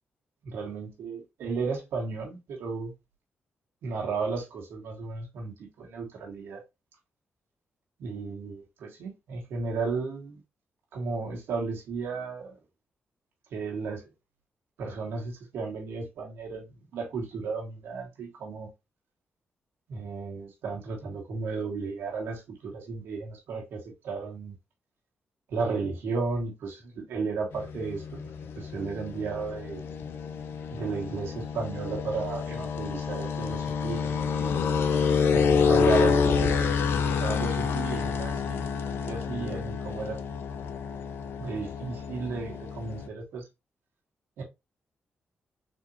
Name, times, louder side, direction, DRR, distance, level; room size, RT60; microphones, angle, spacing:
voice 1, 0.4-2.9 3.8-6.6 8.0-10.4 10.9-12.6 13.5-14.0 14.8-18.7 19.9-24.6 25.5-28.2 28.6-29.8 30.7-34.5 35.3-38.8 39.1-40.2 41.4-43.4 44.4-44.5, right 4 dB, 90° right, 1.4 m, -34 dB
sound 1, 27.5-43.1, left 6 dB, 80° left, 0.4 m, -28 dB
4.1 x 2.8 x 2.7 m
cardioid pair, 70°, 4 cm